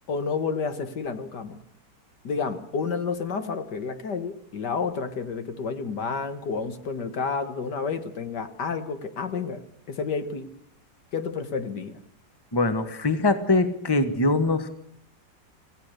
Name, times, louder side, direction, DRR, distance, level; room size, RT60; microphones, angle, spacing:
voice 1, 0.1-1.6 2.2-9.6 9.9-10.5 11.1-12.0, left 5 dB, 70° left, 9 dB, 2.1 m, -30 dB
voice 2, 12.5-14.7, left 2 dB, 15° left, 9 dB, 1.4 m, -23 dB
26.5 x 16.5 x 6.7 m, 0.68 s
omnidirectional pair, 1.9 m